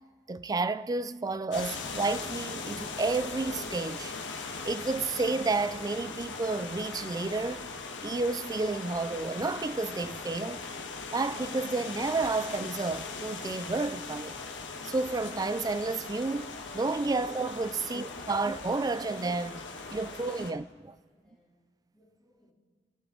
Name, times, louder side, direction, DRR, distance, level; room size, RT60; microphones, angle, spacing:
voice 1, 0.3-4.1 4.6-7.7 8.0-10.7 11.1-14.4 14.8-19.6 19.9-21.0, right 3 dB, 20° right, 0.3 m, -31 dB
sound 1, 1.5-20.5, left 4 dB, 80° left, 1.3 m, -40 dB
Boom, 4.3-7.5, right 1 dB, 80° right, 3.1 m, -58 dB
voice 2, 21.1-21.6 21.9-22.5, equal, 5° left, 3.3 m, -67 dB
28.5 x 10.5 x 3.8 m
head